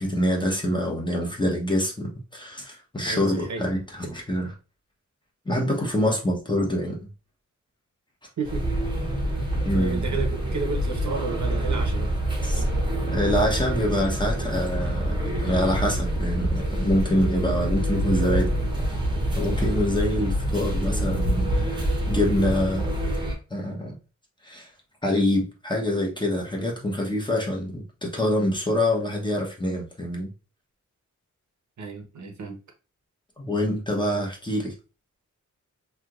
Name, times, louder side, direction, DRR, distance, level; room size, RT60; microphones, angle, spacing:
voice 1, 0.0-4.5 5.5-7.1 9.6-10.0 12.4-12.6 13.1-18.5 19.4-22.9 23.5-23.9 24.4-24.7 25.0-30.3 33.4-34.7, left 1 dB, 15° left, 0.9 m, -26 dB
voice 2, 3.0-3.7 8.4-8.6 9.7-12.1 20.8-21.1 31.8-32.6, right 4 dB, 65° right, 0.8 m, -32 dB
sound 1, 8.4-23.3, right 1 dB, 15° right, 0.9 m, -26 dB
3.3 x 2.8 x 2.4 m
wide cardioid pair, 105°, 31 cm